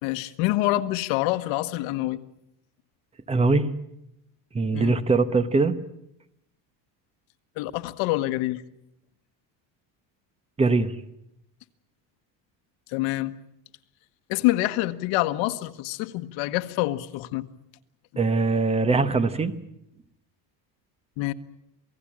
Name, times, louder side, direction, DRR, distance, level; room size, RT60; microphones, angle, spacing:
voice 1, 0.0-2.2 4.7-5.0 7.6-8.6 12.9-13.4 14.3-17.5 21.2-21.3, left 17 dB, 85° left, 9 dB, 1.5 m, -26 dB
voice 2, 3.3-3.7 4.5-5.8 10.6-10.9 18.2-19.5, right 3 dB, 15° right, 12 dB, 1.1 m, -22 dB
27.5 x 18.5 x 8.8 m, 0.79 s
cardioid pair, 170°, 46 cm